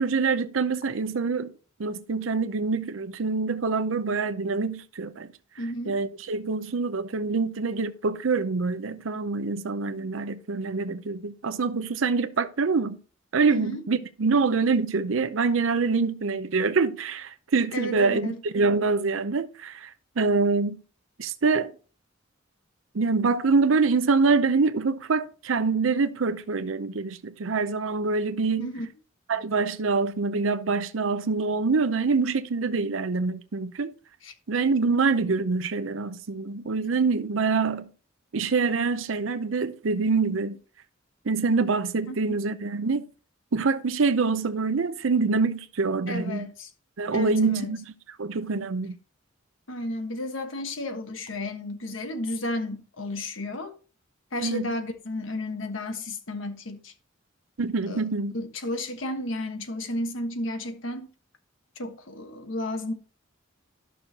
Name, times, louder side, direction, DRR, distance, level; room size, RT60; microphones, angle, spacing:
voice 1, 0.0-1.5 1.8-5.3 5.9-13.0 13.3-20.8 21.2-21.7 22.9-28.7 29.3-33.9 34.5-37.9 38.3-40.6 41.2-43.0 43.5-46.5 47.0-47.8 48.2-49.0 54.4-54.7 57.6-58.4, right 4 dB, 80° right, 0.6 m, -25 dB
voice 2, 5.6-6.0 13.5-13.8 17.7-18.4 28.6-28.9 34.2-34.3 42.1-42.3 46.1-46.7 47.1-47.8 49.7-53.7 54.3-56.9 57.9-58.0 58.3-61.1 61.8-62.9, left 1 dB, 75° left, 1.3 m, -33 dB
12.0 x 6.3 x 2.8 m
head